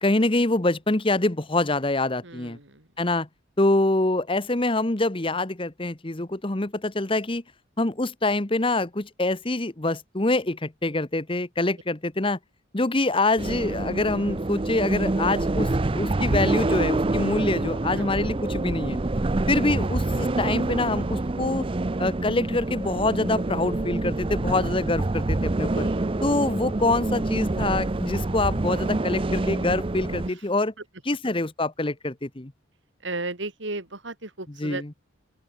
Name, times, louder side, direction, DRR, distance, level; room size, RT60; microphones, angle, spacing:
voice 1, 0.0-2.6 3.0-3.3 3.6-7.4 7.8-12.4 12.7-19.0 19.5-21.6 22.0-25.9 26.2-30.7 31.1-32.5 34.6-34.8, left 2 dB, 25° left, 1.1 m, -25 dB
voice 2, 2.2-2.9 18.0-18.1 25.7-26.0 30.2-30.5 31.2-31.3 33.0-35.0, right 2 dB, 65° right, 3.4 m, -35 dB
sound 1, 13.4-30.3, right 2 dB, 25° right, 0.5 m, -26 dB
open air
head